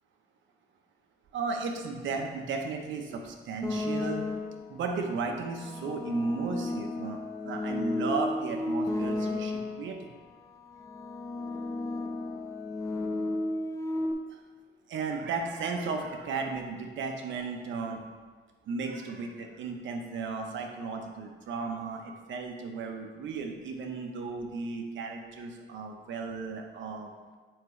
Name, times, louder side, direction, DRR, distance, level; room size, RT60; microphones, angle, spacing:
voice 1, 1.3-4.2 4.7-10.1 14.9-18.0 18.7-27.4, right 4 dB, 70° right, 3 dB, 0.9 m, -35 dB
sound 1, 3.6-4.7 5.5-10.0 10.7-14.1, left 2 dB, 15° left, 0.7 m, -33 dB
7.5 x 4.8 x 3.2 m, 1.4 s
cardioid pair, 90°, 20 cm